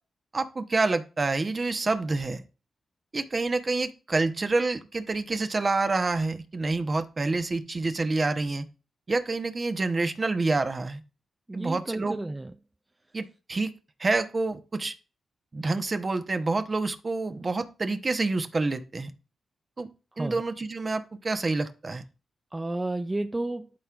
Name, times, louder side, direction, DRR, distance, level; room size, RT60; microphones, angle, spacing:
voice 1, 0.3-2.4 3.1-8.6 9.1-11.0 11.5-12.1 13.1-13.7 14.0-14.9 15.5-19.1 19.8-19.9 20.2-22.0, right 3 dB, 40° right, 1.0 m, -27 dB
voice 2, 11.5-12.5 20.2-20.4 22.5-23.7, right 2 dB, 20° right, 0.5 m, -31 dB
12.0 x 4.4 x 2.5 m
supercardioid pair, 50°, 0 cm